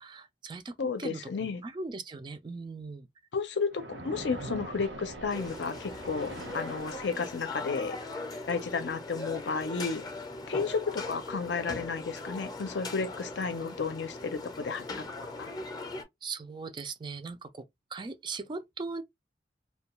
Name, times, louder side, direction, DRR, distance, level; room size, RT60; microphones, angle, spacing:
voice 1, 0.0-1.3 1.6-3.1 4.5-4.6 16.2-17.6 17.9-19.0, right 3 dB, 25° right, 0.3 m, -39 dB
voice 2, 0.8-1.6 3.3-8.0 8.5-10.0 10.5-15.0 15.4-15.5, left 5 dB, 70° left, 0.5 m, -32 dB
Splash splatter, 3.7-7.7, right 1 dB, 85° right, 1.0 m, -43 dB
sound 1, 5.3-16.0, left 2 dB, 25° left, 0.6 m, -40 dB
2.2 x 2.2 x 2.9 m
head